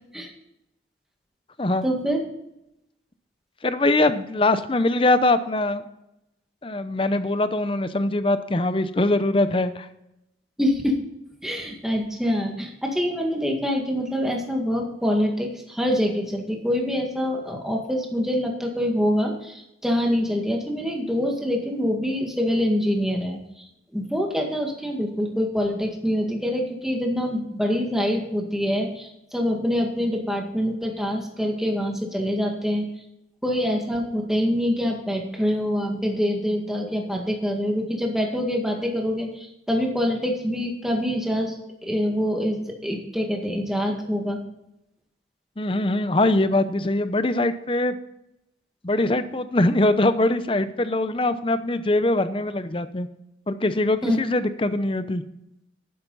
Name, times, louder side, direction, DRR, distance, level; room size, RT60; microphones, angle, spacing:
voice 1, 1.8-2.2 10.6-11.0 11.4-23.7 23.9-32.9 33.4-41.5 41.8-44.4 54.0-54.2, equal, ahead, 1 dB, 1.9 m, -25 dB
voice 2, 3.6-5.8 6.6-9.9 45.6-48.0 48.8-53.1 53.5-55.2, left 2 dB, 30° left, 12 dB, 0.7 m, -22 dB
11.5 x 10.5 x 4.1 m, 0.85 s
head